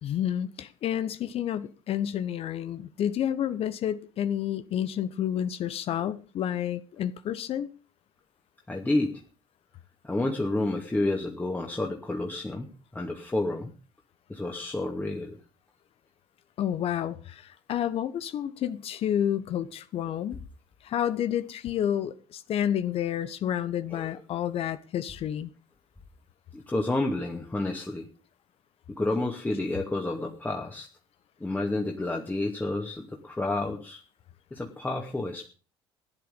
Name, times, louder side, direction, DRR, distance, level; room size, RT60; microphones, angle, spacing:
voice 1, 0.0-7.7 16.6-20.4 20.8-25.5, left 10 dB, 50° left, 1.1 m, -30 dB
voice 2, 8.7-9.2 10.0-12.7 12.9-13.7 14.3-15.4 23.9-24.1 26.5-28.1 28.9-30.9 31.4-34.0 34.5-35.5, left 2 dB, 15° left, 2.3 m, -30 dB
15.5 x 10.5 x 5.3 m
hypercardioid pair, 60°, 13 cm